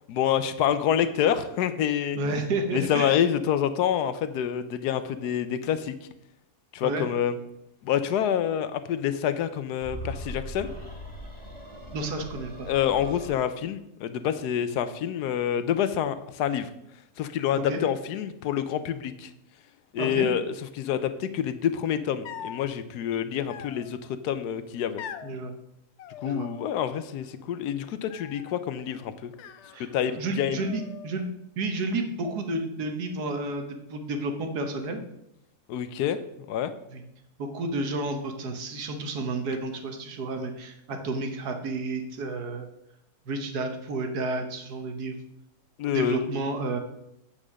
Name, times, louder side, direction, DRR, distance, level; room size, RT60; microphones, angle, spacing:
voice 1, 0.1-2.2 2.7-5.9 6.7-7.4 7.8-10.7 12.7-16.7 17.2-19.3 19.9-24.0 24.2-25.0 26.2-29.3 29.8-30.7 35.7-36.2 36.5-36.7 45.8-46.2, left 9 dB, 85° left, 12 dB, 1.2 m, -27 dB
voice 2, 2.2-3.2 6.8-7.1 11.9-12.7 17.5-17.8 20.0-20.3 25.2-25.5 26.2-26.5 29.7-29.9 30.2-33.6 33.9-35.0 36.9-37.0 37.4-42.7 43.3-45.2 45.9-46.8, right 2 dB, 80° right, 5 dB, 1.6 m, -31 dB
sound 1, 9.8-13.3, equal, 20° left, 2.6 m, -40 dB
sound 2, 22.2-22.7 23.5-24.2 25.0-25.4 26.0-26.8 27.1-27.6 28.1-28.6 29.3-30.2 30.6-31.3, left 9 dB, 65° left, 0.7 m, -43 dB
8.7 x 4.9 x 6.2 m, 0.82 s
omnidirectional pair, 1.7 m